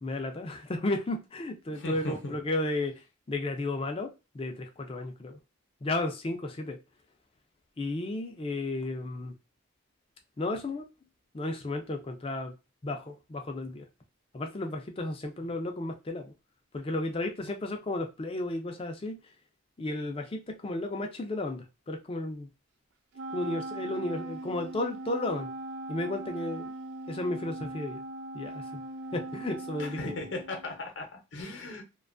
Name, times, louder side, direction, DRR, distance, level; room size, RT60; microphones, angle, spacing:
voice 1, 0.0-3.0 3.3-5.4 5.8-6.8 7.8-9.3 10.4-10.9 11.3-12.5 12.8-13.9 14.3-16.3 16.7-19.2 19.8-22.5 23.3-25.5 25.9-26.7 27.1-28.0 28.3-28.8 29.1-30.1, left 2 dB, 25° left, 0.4 m, -33 dB
voice 2, 1.7-2.3 29.8-31.8, left 2 dB, 60° left, 0.7 m, -38 dB
Wind instrument woodwind instrument, 23.1-30.8, right 2 dB, 60° right, 0.3 m, -40 dB
2.5 x 2.2 x 2.4 m
head